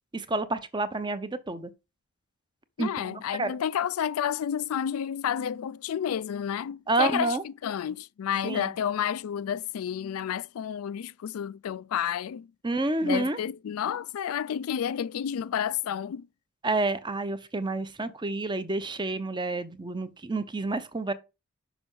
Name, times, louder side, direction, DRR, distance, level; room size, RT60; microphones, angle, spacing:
voice 1, 0.1-1.7 2.8-3.5 6.9-7.4 8.4-8.6 12.6-13.4 16.6-21.1, right 2 dB, 20° right, 0.6 m, -29 dB
voice 2, 2.8-12.5 13.0-16.3, left 9 dB, 85° left, 0.3 m, -30 dB
6.1 x 5.3 x 5.3 m
head